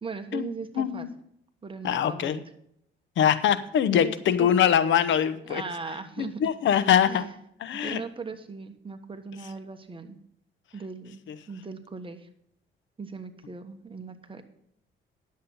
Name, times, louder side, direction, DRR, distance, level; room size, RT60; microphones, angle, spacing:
voice 1, 0.0-1.1 1.6-2.4 3.9-4.1 4.4-4.5 5.5-6.4 7.0-7.4 7.7-10.2 10.7-12.3 13.0-14.4, right 4 dB, 25° right, 7 dB, 1.3 m, -38 dB
voice 2, 0.8-1.1 1.8-2.4 3.2-5.6 6.2-7.2 7.6-8.0, left 9 dB, 70° left, 13 dB, 0.9 m, -23 dB
10.0 x 7.5 x 5.5 m, 0.72 s
cardioid pair, 90°, 20 cm